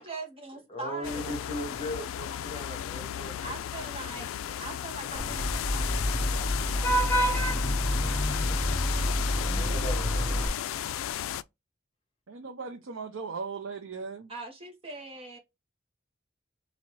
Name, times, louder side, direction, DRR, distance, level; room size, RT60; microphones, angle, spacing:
voice 1, 0.0-1.4 3.4-4.3 4.6-9.4 14.3-15.4, right 3 dB, 30° right, 1.4 m, -43 dB
voice 2, 0.7-3.4 4.5-4.6 5.1-5.2 5.8-5.9 9.3-10.5, equal, 30° left, 1.5 m, -38 dB
sound 1, 1.0-11.4, left 11 dB, 80° left, 0.3 m, -34 dB
Vehicle horn car horn honking / Traffic noise roadway noise, 5.2-10.5, equal, 10° left, 0.7 m, -28 dB
voice 3, 12.3-14.3, right 5 dB, 85° right, 0.6 m, -38 dB
4.0 x 2.8 x 3.0 m
head